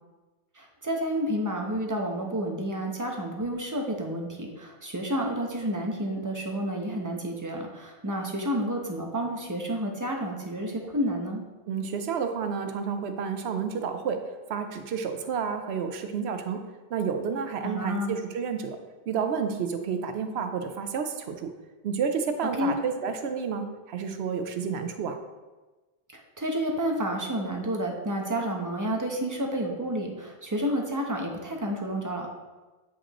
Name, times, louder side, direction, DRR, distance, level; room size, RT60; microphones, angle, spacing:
voice 1, 0.6-11.4 17.6-18.1 22.6-22.7 26.1-32.3, equal, 20° right, 1 dB, 0.8 m, -30 dB
voice 2, 11.7-14.2 14.5-16.6 16.9-18.8 19.1-21.5 21.8-25.2, right 6 dB, 85° right, 7 dB, 0.9 m, -30 dB
8.2 x 5.0 x 3.0 m, 1.2 s
omnidirectional pair, 1.0 m